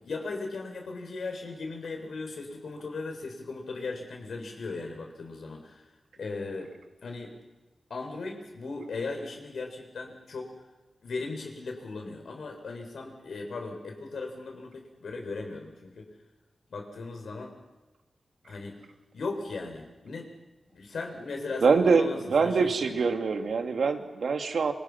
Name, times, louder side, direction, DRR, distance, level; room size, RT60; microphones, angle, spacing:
voice 1, 0.0-5.9 6.2-6.7 7.0-7.4 7.9-10.5 11.0-16.1 16.7-17.5 18.4-18.8 19.1-20.3 20.7-23.0, left 3 dB, 75° left, 1 dB, 7.1 m, -37 dB
voice 2, 21.6-24.7, right 5 dB, 70° right, 5 dB, 2.5 m, -24 dB
28.5 x 27.5 x 6.1 m, 1.1 s
wide cardioid pair, 140°, 0 cm